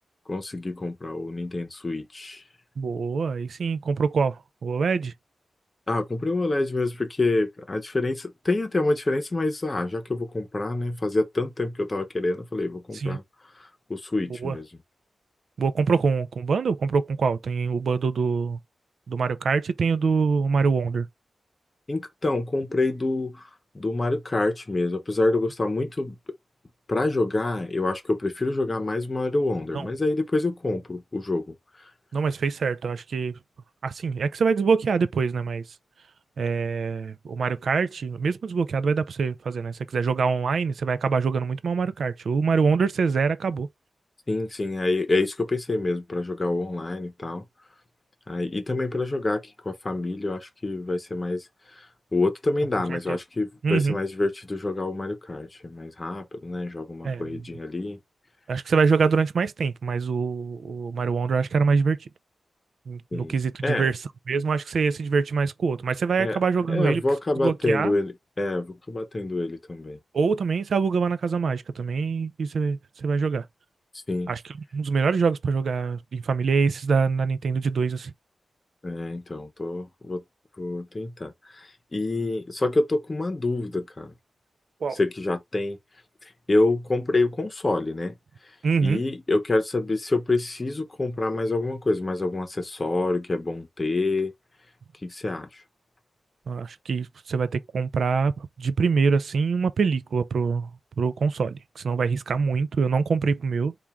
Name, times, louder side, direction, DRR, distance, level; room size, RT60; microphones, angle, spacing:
voice 1, 0.3-2.4 5.9-13.2 13.6-14.6 21.9-23.5 23.7-26.2 26.9-31.9 44.3-47.4 48.3-51.9 52.1-58.0 63.1-63.4 63.6-63.9 66.2-66.4 66.7-70.0 74.1-74.3 78.8-80.2 80.6-84.1 84.9-85.8 86.5-88.1 88.8-94.3 95.0-95.6, left 2 dB, 30° left, 0.8 m, -27 dB
voice 2, 2.8-5.1 12.9-13.2 14.4-14.6 15.6-18.6 19.1-21.1 29.7-29.9 32.1-33.4 33.8-35.8 36.4-43.7 52.9-53.2 53.6-54.0 57.0-57.4 58.5-62.1 62.9-67.0 67.4-67.9 70.1-73.5 74.3-78.1 84.8-85.0 88.6-89.0 96.5-103.7, right 5 dB, 75° right, 0.4 m, -25 dB
4.4 x 2.4 x 3.5 m
wide cardioid pair, 125°, 0 cm